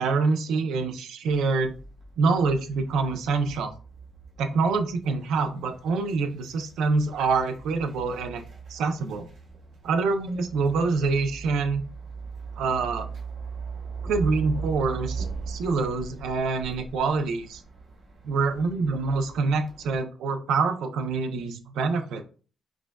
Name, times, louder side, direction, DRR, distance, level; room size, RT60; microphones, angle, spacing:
voice 1, 0.0-1.8 2.2-3.7 4.4-8.4 8.7-9.3 9.8-11.8 12.6-13.1 14.0-17.6 18.2-22.2, right 4 dB, 90° right, 7 dB, 0.5 m, -26 dB
sound 1, 1.3-20.0, right 5 dB, 70° right, 0.9 m, -40 dB
4.7 x 2.3 x 2.2 m, 0.39 s
cardioid pair, 135°, 0 cm